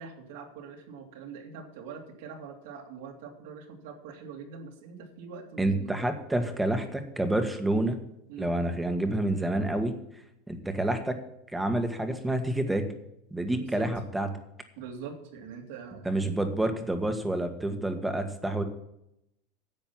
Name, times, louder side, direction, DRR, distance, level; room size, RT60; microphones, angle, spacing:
voice 1, 0.0-6.0 8.3-8.5 13.5-13.9 14.8-16.4, right 6 dB, 75° right, 2 dB, 3.1 m, -43 dB
voice 2, 5.6-8.0 8.4-10.0 10.5-11.2 11.5-12.9 13.3-14.3 16.0-18.6, right 1 dB, 5° right, 7 dB, 1.6 m, -28 dB
10.5 x 7.9 x 7.4 m, 0.80 s
supercardioid pair, 130°, 0 cm